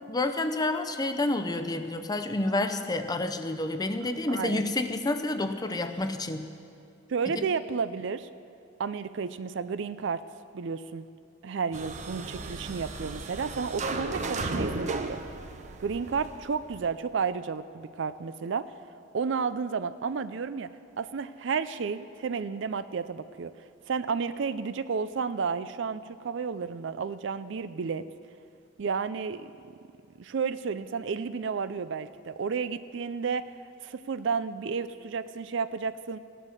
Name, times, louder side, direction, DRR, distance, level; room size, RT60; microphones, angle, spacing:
voice 1, 0.1-6.5 7.4-7.5, left 2 dB, 20° left, 8 dB, 0.7 m, -29 dB
voice 2, 4.3-4.7 7.1-8.3 8.8-10.2 10.5-11.1 11.4-15.2 15.8-18.7 19.1-20.7 21.0-23.5 23.9-28.1 28.8-29.5 30.2-33.5 33.8-36.2, right 5 dB, 65° right, 14 dB, 0.4 m, -32 dB
sound 1, 11.7-16.9, right 2 dB, 35° right, 0.8 m, -35 dB
15.5 x 10.0 x 6.4 m, 2.5 s
head